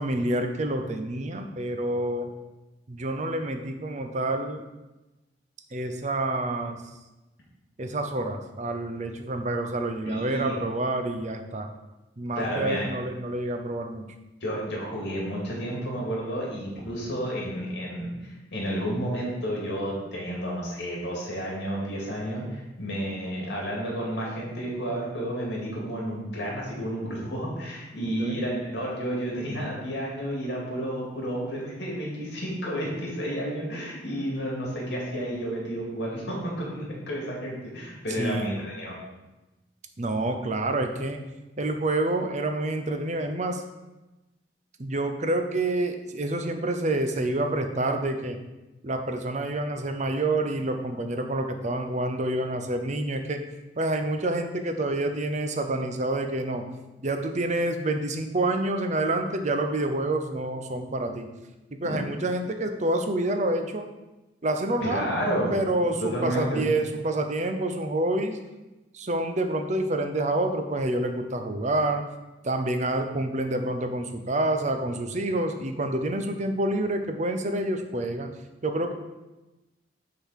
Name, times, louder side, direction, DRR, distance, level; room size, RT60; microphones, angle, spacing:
voice 1, 0.0-2.3 2.9-4.6 5.7-6.8 7.8-11.7 12.2-14.1 28.2-28.4 38.2-38.5 40.0-41.2 41.6-43.6 44.8-48.4 48.8-53.4 53.8-56.6 57.0-61.3 61.7-63.8 64.4-65.1 65.5-68.4 68.9-72.0 72.4-78.3 78.6-78.9, right 2 dB, 40° right, 6 dB, 0.7 m, -28 dB
voice 2, 10.1-10.5 12.4-12.9 14.4-39.0 61.8-62.0 64.8-65.5 65.8-66.6, equal, 65° left, -3 dB, 2.3 m, -31 dB
6.8 x 3.9 x 6.4 m, 1.1 s
head